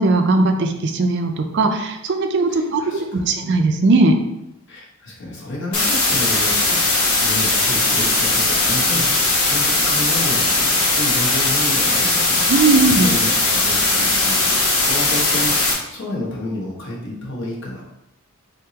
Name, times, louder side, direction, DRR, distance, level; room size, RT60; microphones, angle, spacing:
voice 1, 0.0-4.2 12.5-13.1, right 3 dB, 55° right, 5 dB, 0.4 m, -18 dB
voice 2, 2.5-3.3 4.7-12.7 13.0-15.5 15.9-17.8, left 1 dB, 55° left, -4 dB, 1.2 m, -30 dB
sound 1, 5.7-15.7, left 2 dB, 75° left, 1.1 m, -18 dB
4.0 x 3.6 x 2.8 m, 0.86 s
head